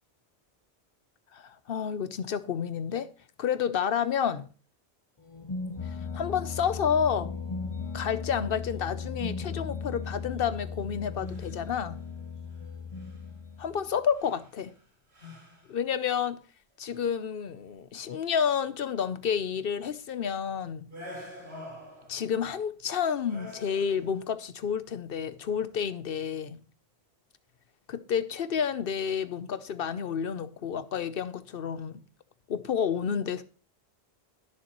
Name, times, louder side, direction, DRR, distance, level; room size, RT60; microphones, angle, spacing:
voice 1, 1.3-3.1 3.4-4.5 6.1-7.3 7.9-12.0 13.6-14.7 15.7-16.4 16.8-20.9 22.1-26.6 27.9-32.0 32.5-33.4, left 7 dB, 65° left, 0.9 m, -30 dB
sound 1, 5.3-14.1, left 5 dB, 35° left, 0.7 m, -37 dB
sound 2, 10.0-10.3 11.1-11.8 12.5-12.6 12.9-13.2 14.1-14.8 15.1-15.8 16.8-17.2 20.9-22.4 23.2-24.3, left 1 dB, 85° right, 4.4 m, -47 dB
17.5 x 6.9 x 3.0 m
omnidirectional pair, 1.1 m